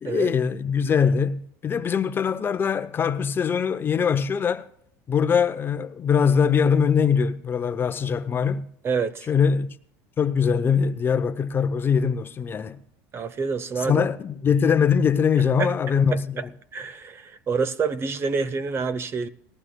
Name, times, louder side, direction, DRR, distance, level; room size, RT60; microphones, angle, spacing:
voice 1, 0.0-4.7 5.1-8.7 9.3-9.8 10.2-12.8 13.8-16.4, left 6 dB, 30° left, 0.6 m, -22 dB
voice 2, 8.8-9.3 13.1-14.0 15.6-15.7 16.1-16.4 16.7-19.3, right 5 dB, 30° right, 0.7 m, -27 dB
19.0 x 14.5 x 2.2 m
supercardioid pair, 115°, 8 cm